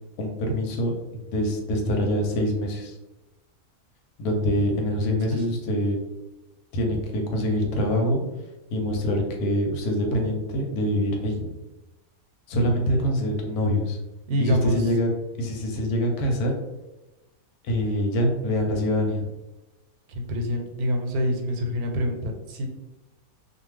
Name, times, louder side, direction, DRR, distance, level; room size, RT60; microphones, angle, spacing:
voice 1, 0.2-3.0 4.2-6.0 6.7-8.2 8.7-11.5 12.5-14.0 14.4-15.1 15.4-16.5 17.6-19.3, equal, 90° left, 2 dB, 1.2 m, -25 dB
voice 2, 14.3-14.8 20.1-22.7, equal, 85° right, 3 dB, 1.1 m, -26 dB
2.6 x 2.4 x 3.1 m, 1.0 s
omnidirectional pair, 1.6 m